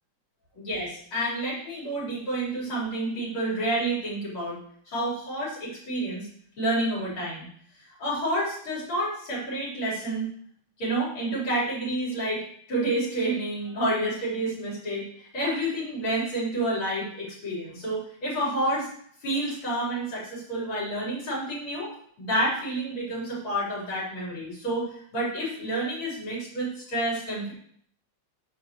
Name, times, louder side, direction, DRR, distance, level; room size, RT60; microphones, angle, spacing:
voice 1, 0.6-4.6 4.9-6.3 6.6-7.4 8.0-10.3 10.8-18.9 19.2-21.9 22.2-27.5, right 1 dB, 80° left, -6 dB, 5.3 m, -29 dB
9.5 x 4.9 x 7.3 m, 0.62 s
omnidirectional pair, 2.3 m